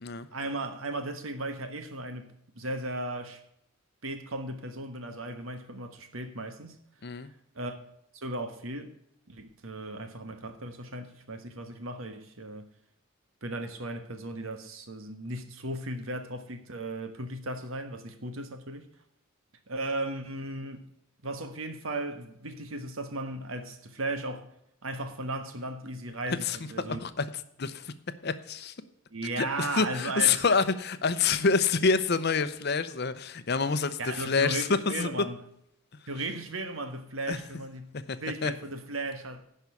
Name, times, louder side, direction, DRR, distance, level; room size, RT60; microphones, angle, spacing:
voice 1, 0.3-3.4 4.0-6.8 7.5-7.7 8.1-8.9 9.3-12.6 13.4-18.9 19.7-20.9 21.2-24.5 24.8-27.0 29.1-30.6 34.0-35.4 36.1-37.9 38.2-39.4, right 2 dB, 75° right, 1.4 m, -36 dB
voice 2, 26.9-27.3 27.6-27.9 28.2-28.7 29.4-35.1 37.3-37.4 37.9-38.5, left 5 dB, 50° left, 0.7 m, -27 dB
10.5 x 5.6 x 8.2 m
head